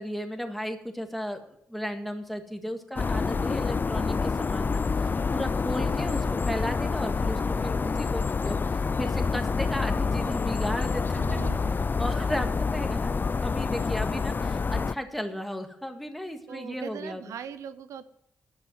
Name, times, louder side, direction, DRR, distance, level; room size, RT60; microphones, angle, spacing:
voice 1, 0.0-11.4 12.0-13.1 13.4-17.2, equal, ahead, 5 dB, 1.9 m, -35 dB
sound 1, 3.0-15.0, left 4 dB, 40° left, 0.4 m, -27 dB
voice 2, 11.2-11.8 16.5-18.1, right 8 dB, 85° right, 13 dB, 0.6 m, -40 dB
11.0 x 6.2 x 9.1 m, 0.75 s
cardioid pair, 55°, 5 cm